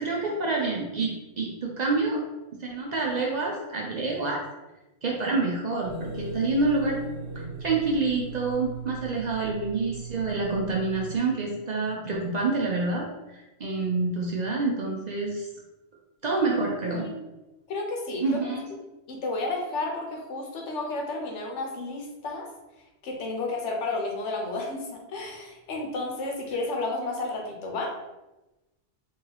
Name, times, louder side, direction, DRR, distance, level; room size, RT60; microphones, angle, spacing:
voice 1, 0.0-2.2 2.6-4.4 5.0-7.0 7.6-13.1 13.3-15.5 16.2-17.1 18.2-18.7, right 3 dB, 50° right, -2 dB, 0.5 m, -27 dB
sound 1, 5.8-11.2, right 3 dB, 80° right, 1.1 m, -38 dB
voice 2, 16.9-17.2 17.7-18.4 19.1-22.5 23.0-27.9, left 2 dB, 85° left, 0 dB, 1.1 m, -32 dB
3.0 x 2.8 x 3.9 m, 1.0 s
omnidirectional pair, 1.2 m